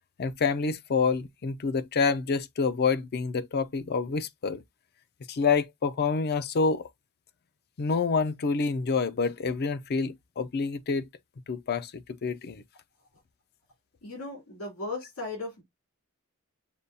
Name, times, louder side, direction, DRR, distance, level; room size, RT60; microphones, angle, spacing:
voice 1, 0.2-4.6 5.3-6.9 7.8-11.1 11.5-12.6, left 5 dB, 45° left, 0.4 m, -27 dB
voice 2, 14.0-15.6, left 2 dB, 80° left, 3.2 m, -36 dB
6.6 x 2.3 x 2.6 m
head